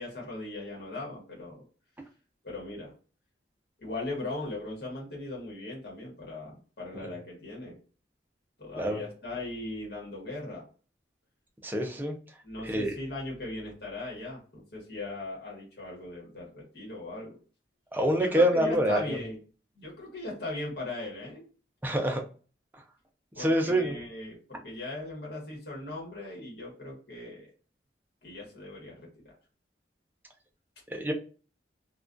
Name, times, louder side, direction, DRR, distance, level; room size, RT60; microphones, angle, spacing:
voice 1, 0.0-1.6 2.4-2.9 3.8-7.7 8.6-10.6 12.4-17.4 18.1-19.4 19.7-21.4 23.3-27.5 28.2-29.3, left 2 dB, 60° left, -2 dB, 1.1 m, -39 dB
voice 2, 11.6-12.1 12.6-12.9 17.9-19.0 21.8-22.2 23.4-23.9 30.9-31.1, equal, 10° right, 2 dB, 0.4 m, -26 dB
2.3 x 2.2 x 2.5 m, 0.37 s
head